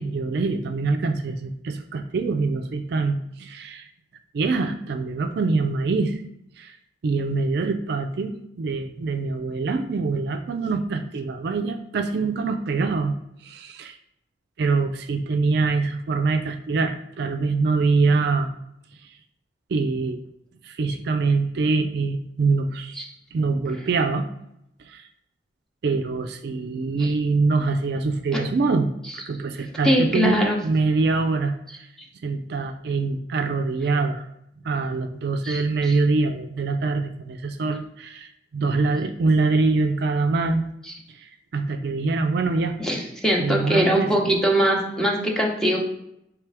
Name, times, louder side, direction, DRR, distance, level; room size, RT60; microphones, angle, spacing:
voice 1, 0.0-3.9 4.3-6.2 6.6-6.8 7.0-13.2 13.4-14.0 14.6-18.5 19.7-20.2 20.6-23.0 23.3-24.3 24.8-25.1 25.8-28.9 29.1-31.9 32.2-34.3 34.6-40.6 41.1-42.8 43.4-44.3, right 3 dB, 60° right, 6 dB, 0.4 m, -24 dB
voice 2, 29.8-30.6 35.4-36.0 42.8-45.8, equal, 5° left, -2 dB, 0.8 m, -22 dB
3.3 x 3.3 x 4.7 m, 0.79 s
head